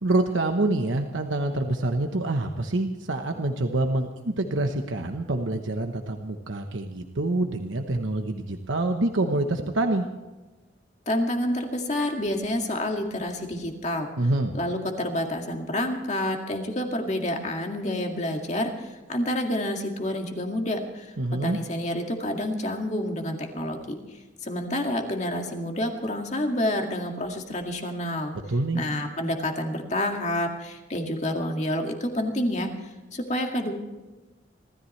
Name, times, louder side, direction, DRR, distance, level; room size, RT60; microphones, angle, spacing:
voice 1, 0.0-10.1 14.2-14.5 21.2-21.6 28.5-28.8, right 2 dB, 85° right, 5 dB, 1.1 m, -26 dB
voice 2, 11.1-14.1 14.5-21.2 21.4-28.3 28.7-33.7, left 1 dB, 35° left, 3 dB, 2.1 m, -28 dB
26.0 x 14.0 x 3.3 m, 1.2 s
head